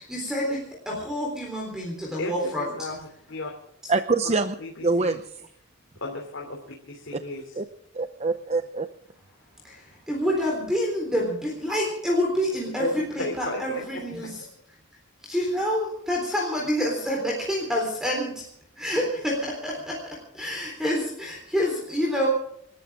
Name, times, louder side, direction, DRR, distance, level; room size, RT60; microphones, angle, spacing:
voice 1, 0.0-2.7 9.6-14.4 15.2-18.4 18.8-22.3, equal, 5° right, -1 dB, 3.8 m, -27 dB
voice 2, 2.2-3.5 4.2-5.2 6.0-6.6 6.9-7.6 12.8-12.9 13.2-14.0, left 2 dB, 60° left, 0 dB, 3.0 m, -34 dB
voice 3, 3.9-4.6 4.8-5.5 7.1-7.2 7.6-7.7 7.9-8.9, right 3 dB, 30° right, 9 dB, 0.6 m, -25 dB
28.0 x 13.0 x 3.7 m, 0.69 s
head